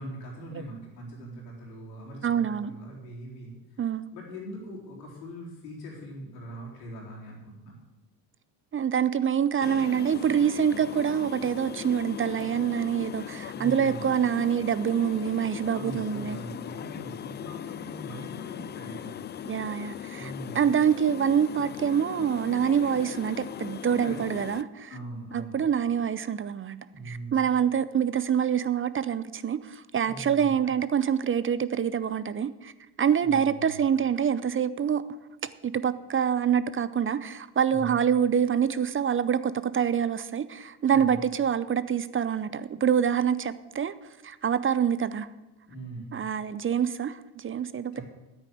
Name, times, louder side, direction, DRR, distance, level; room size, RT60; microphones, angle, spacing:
voice 1, 0.0-3.8 4.1-7.8 13.5-14.0 15.7-19.2 20.2-20.7 24.0-24.2 24.9-25.7 26.9-27.5 30.0-30.5 33.2-33.8 37.7-38.0 40.9-41.2 45.7-46.1 47.9-48.0, right 1 dB, 85° left, -2 dB, 3.9 m, -41 dB
voice 2, 2.2-2.7 3.8-4.0 8.7-16.4 19.5-24.9 25.3-26.8 27.1-32.7 33.0-35.0 35.6-43.9 44.2-45.3 46.1-48.0, right 8 dB, 25° right, 15 dB, 0.6 m, -26 dB
sound 1, 9.6-24.6, left 10 dB, 25° left, 0.3 m, -39 dB
10.0 x 9.0 x 7.7 m, 1.0 s
hypercardioid pair, 65°, 48 cm